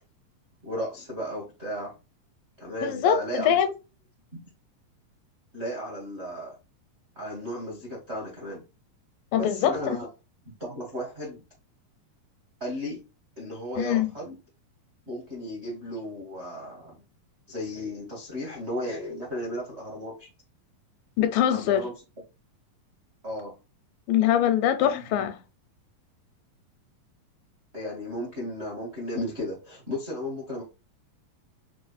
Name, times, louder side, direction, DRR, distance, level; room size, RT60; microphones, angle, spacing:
voice 1, 0.6-1.9 2.6-3.6 4.3-4.4 5.5-6.5 7.1-8.6 9.3-10.1 10.4-11.4 12.6-13.0 13.4-14.3 15.1-17.0 17.5-20.3 21.5-21.9 23.2-23.5 24.8-25.2 27.7-30.6, equal, 65° right, 0.6 m, -34 dB
voice 2, 2.8-3.7 9.3-10.0 13.8-14.4 21.2-21.9 24.1-25.4, left 10 dB, 80° left, 2.3 m, -23 dB
6.0 x 2.1 x 2.5 m
omnidirectional pair, 4.0 m